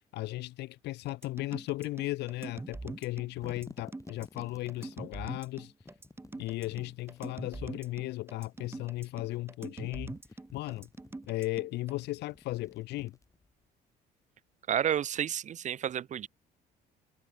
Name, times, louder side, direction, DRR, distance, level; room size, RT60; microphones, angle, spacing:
voice 1, 0.1-5.7 6.4-10.2 10.5-10.9 11.3-13.2, left 18 dB, 85° left, 6.7 m, -36 dB
sound 1, 1.1-11.9, right 2 dB, 15° right, 5.2 m, -43 dB
sound 2, 3.1-5.0 5.8-7.4 8.3-9.4 9.8-11.3 11.9-13.7, left 3 dB, 20° left, 6.9 m, -53 dB
voice 2, 14.7-16.3, right 9 dB, 45° right, 0.8 m, -30 dB
cardioid pair, 110°, 17 cm